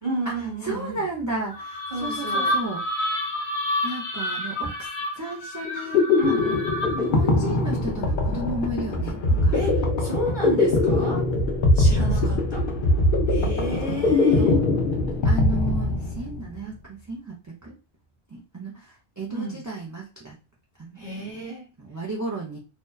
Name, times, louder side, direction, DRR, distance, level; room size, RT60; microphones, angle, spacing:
voice 1, 0.0-1.0 1.9-2.5 6.2-6.7 9.5-11.2 11.7-12.6 13.3-14.5 19.3-19.6 21.0-21.7, right 1 dB, 25° left, -3 dB, 1.2 m, -31 dB
voice 2, 0.6-2.8 3.8-4.9 5.2-6.0 7.0-9.5 12.2-12.4 14.4-14.6 15.2-17.3 17.6-17.7 18.3-20.4 20.8-21.4 21.8-22.6, right 2 dB, 25° right, -4 dB, 0.4 m, -33 dB
sound 1, 1.5-7.2, left 1 dB, 85° left, 1.0 m, -29 dB
sound 2, 5.7-16.5, left 2 dB, 60° left, 0.7 m, -22 dB
2.7 x 2.1 x 2.2 m, 0.31 s
omnidirectional pair, 1.1 m